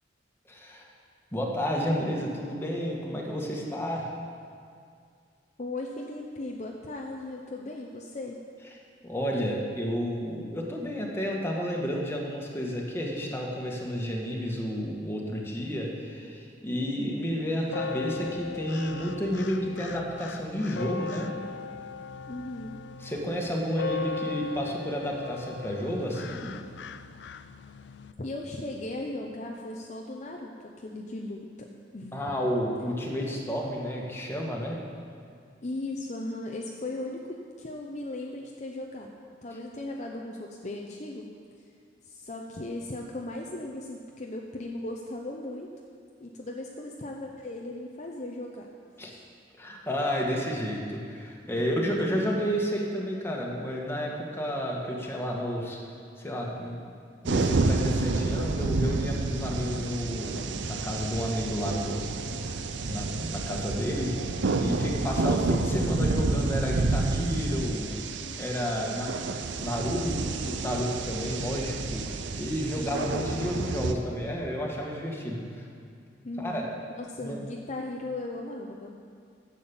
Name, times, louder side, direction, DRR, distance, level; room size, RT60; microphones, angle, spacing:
voice 1, 0.5-0.9 1.3-4.1 9.0-21.3 23.0-26.5 32.1-34.8 49.0-49.1 49.6-55.8 56.2-56.8 57.2-62.0 62.4-62.6 62.9-64.1 64.6-68.0 68.4-69.1 69.6-72.0 72.3-75.6 76.4-76.6 77.2-77.4, equal, 15° left, -2 dB, 1.5 m, -31 dB
voice 2, 5.6-8.4 22.3-22.8 28.2-31.7 31.9-32.2 35.6-39.1 39.4-41.3 42.0-45.7 46.2-48.7 51.5-52.1 68.2-69.0 72.7-73.2 76.2-79.0, left 2 dB, 40° left, 0 dB, 0.7 m, -37 dB
sound 1, 17.7-28.1, left 4 dB, 70° left, 0.4 m, -38 dB
sound 2, 57.3-73.9, right 3 dB, 85° right, 0.6 m, -29 dB
10.5 x 7.6 x 7.1 m, 2.2 s
head